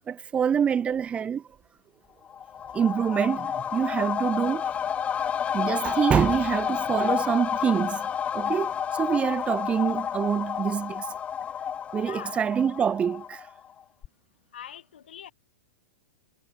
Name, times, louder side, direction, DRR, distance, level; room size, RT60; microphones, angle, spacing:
voice 1, 0.1-1.4 2.7-4.7 5.5-8.1 8.3-11.1 11.9-13.4, right 7 dB, 20° right, 1.4 m, -26 dB
sound 1, 2.3-13.7 14.0-14.1, left 8 dB, 20° left, 2.3 m, -30 dB
voice 2, 12.0-12.4 14.5-15.3, left 10 dB, 65° left, 6.0 m, -43 dB
hypercardioid pair, 105°, 6 cm